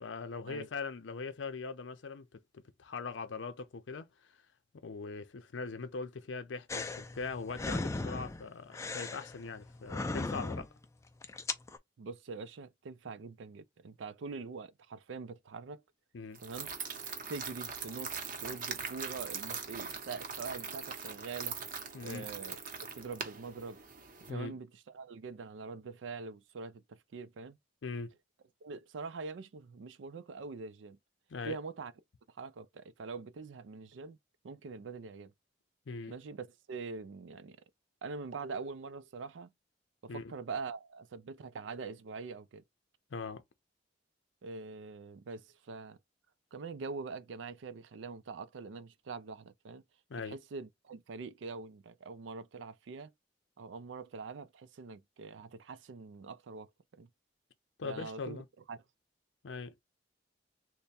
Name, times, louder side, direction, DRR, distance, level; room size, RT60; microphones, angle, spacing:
voice 1, 0.0-4.4 4.8-10.7 16.1-16.4 21.9-22.3 24.3-24.6 27.8-28.1 31.3-31.6 35.9-36.1 40.1-40.3 43.1-43.4 50.1-50.4 57.8-58.4 59.4-59.7, left 4 dB, 90° left, 0.5 m, -41 dB
sound 1, 6.7-10.8 11.2-11.8, left 3 dB, 15° left, 0.3 m, -37 dB
voice 2, 12.0-15.8 16.4-16.7 17.3-21.6 22.0-22.6 22.9-23.8 24.3-27.6 28.6-31.0 31.4-31.9 32.3-34.2 34.4-35.3 36.1-37.6 38.0-39.5 40.0-42.6 44.4-46.0 46.5-49.8 50.2-53.1 53.6-57.1 57.8-58.4 58.7-58.8, right 4 dB, 90° right, 0.4 m, -44 dB
sound 2, 16.3-24.3, right 6 dB, 45° right, 0.7 m, -41 dB
3.3 x 2.1 x 4.0 m
head